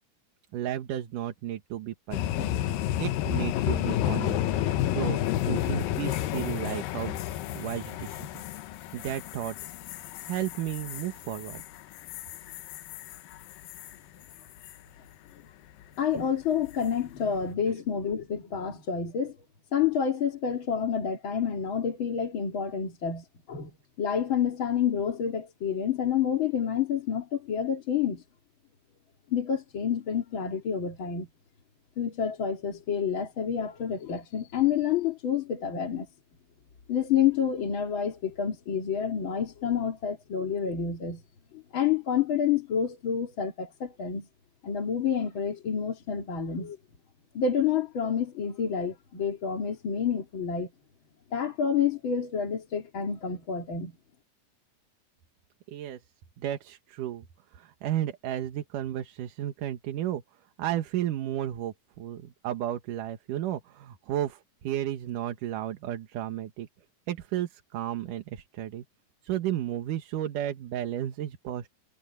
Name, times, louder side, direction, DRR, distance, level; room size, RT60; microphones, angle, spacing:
voice 1, 0.5-2.5 3.0-4.5 4.9-7.2 7.5-8.4 8.9-9.5 10.2-11.6 17.7-17.8 55.7-56.0 56.4-57.3 57.5-60.2 60.6-66.7 67.1-68.8 69.2-71.7, right 12 dB, 70° right, 2.8 m, -33 dB
sound 1, 2.1-14.0 14.3-14.7 16.7-17.0, left 13 dB, 85° left, 2.6 m, -31 dB
voice 2, 16.0-19.4 19.7-23.7 24.0-28.2 29.3-31.3 32.0-36.1 36.9-41.2 41.5-44.3 44.6-46.8 47.3-50.7 51.3-53.9, left 8 dB, 40° left, 2.5 m, -28 dB
omnidirectional pair, 4.0 m